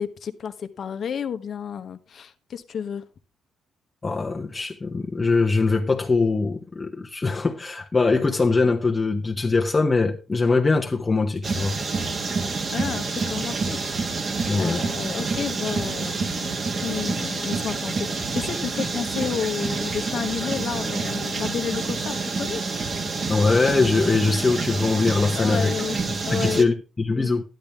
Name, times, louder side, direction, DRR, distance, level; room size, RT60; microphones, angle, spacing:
voice 1, 0.0-3.0 12.7-14.3 14.6-22.6 25.3-26.0 26.3-26.7, left 7 dB, 55° left, 1.0 m, -31 dB
voice 2, 4.0-11.8 14.5-14.8 23.3-25.7 26.1-27.4, left 3 dB, 25° left, 1.1 m, -22 dB
sound 1, 11.4-26.6, right 4 dB, 40° right, 1.5 m, -28 dB
12.0 x 10.5 x 3.5 m
cardioid pair, 90°, 0 cm